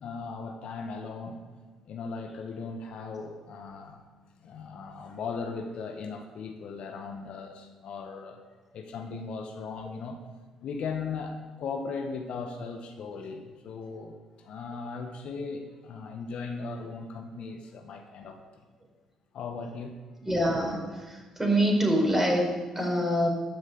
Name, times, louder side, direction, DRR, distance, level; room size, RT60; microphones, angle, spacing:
voice 1, 0.0-1.4 1.9-4.0 4.4-8.4 8.7-10.2 10.6-18.4 19.3-19.9, left 4 dB, 60° left, 4 dB, 1.4 m, -38 dB
voice 2, 20.2-20.8 21.1-22.4 22.7-23.3, equal, 15° right, 0 dB, 4.8 m, -24 dB
14.0 x 6.4 x 8.6 m, 1.4 s
hypercardioid pair, 45°, 2 cm